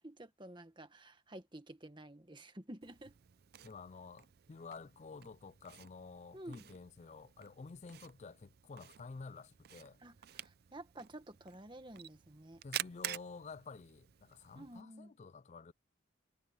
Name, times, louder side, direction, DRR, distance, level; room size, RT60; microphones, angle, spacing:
voice 1, 0.0-3.2 6.3-6.7 10.0-12.6 14.5-15.1, right 1 dB, 25° right, 1.6 m, -51 dB
Camera, 2.8-14.8, right 12 dB, 50° right, 0.5 m, -49 dB
voice 2, 3.6-10.0 12.6-15.7, left 4 dB, 35° left, 0.4 m, -51 dB
head